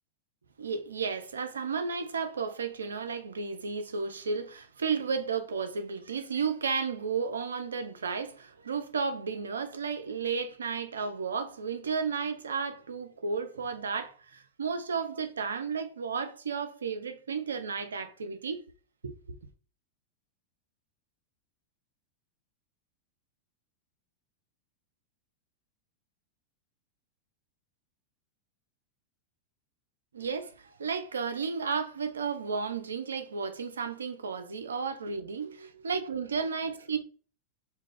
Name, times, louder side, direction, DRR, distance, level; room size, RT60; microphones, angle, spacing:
voice 1, 0.6-18.6 19.0-19.4 30.1-37.0, right 5 dB, 70° right, 0.4 m, -33 dB
2.3 x 2.3 x 3.4 m
figure-of-eight pair, 90°, 0 cm